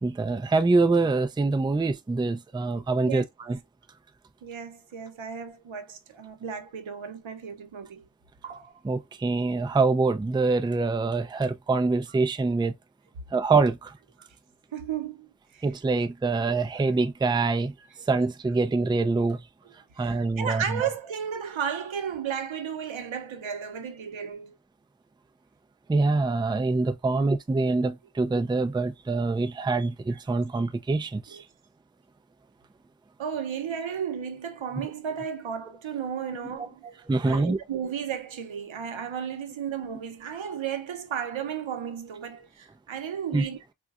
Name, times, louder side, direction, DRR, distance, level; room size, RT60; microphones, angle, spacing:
voice 1, 0.0-3.6 8.8-12.7 13.3-13.9 15.6-17.7 18.1-19.4 20.0-20.6 25.9-31.4 37.1-37.6 43.3-43.5, right 3 dB, 10° right, 0.3 m, -25 dB
voice 2, 4.4-8.0 8.4-8.7 14.7-15.3 15.5-15.7 19.6-19.7 20.0-24.6 27.1-27.2 30.1-30.2 31.3-31.4 33.2-43.6, right 8 dB, 85° right, 0.7 m, -34 dB
3.8 x 2.2 x 2.3 m
wide cardioid pair, 80°, 45 cm